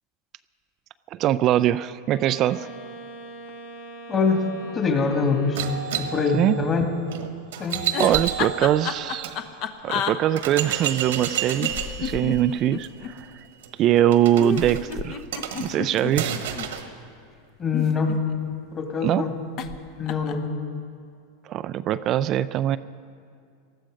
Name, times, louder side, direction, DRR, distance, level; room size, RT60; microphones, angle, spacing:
voice 1, 1.1-2.7 6.3-6.6 8.0-9.4 9.8-11.7 12.0-13.3 13.8-15.2 15.6-16.4 19.0-19.2 21.5-22.8, right 12 dB, 45° right, 12 dB, 0.3 m, -22 dB
Wind instrument woodwind instrument, 2.1-6.4, right 2 dB, 85° left, 2.9 m, -42 dB
voice 2, 4.1-4.5 4.7-5.6 5.9-6.9 7.6-7.8 17.6-18.2 18.7-19.4 20.0-20.5, left 4 dB, 30° left, 3 dB, 2.3 m, -24 dB
sound 1, 5.6-9.4 9.9-10.0 10.4-16.9, right 10 dB, 80° right, 1.4 m, -31 dB
sound 2, 7.9-10.1 11.6-13.1 14.4-16.7 17.6-18.5 19.6-19.8 20.1-20.5, left 8 dB, 50° left, 1.0 m, -30 dB
19.0 x 13.0 x 5.2 m, 2.3 s
hypercardioid pair, 110°, 0 cm